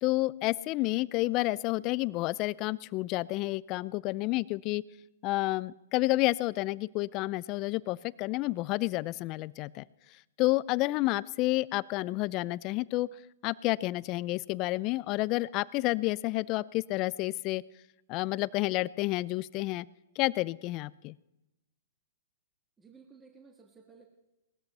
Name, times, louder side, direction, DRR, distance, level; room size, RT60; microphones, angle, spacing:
voice 1, 0.0-4.8 5.2-9.8 10.4-13.1 13.4-17.6 18.1-19.9 20.2-21.1, left 19 dB, 35° left, 21 dB, 0.4 m, -30 dB
voice 2, 22.8-24.0, right 5 dB, 15° right, 3 dB, 1.7 m, -56 dB
19.0 x 13.5 x 4.2 m, 0.95 s
hypercardioid pair, 130°, 0 cm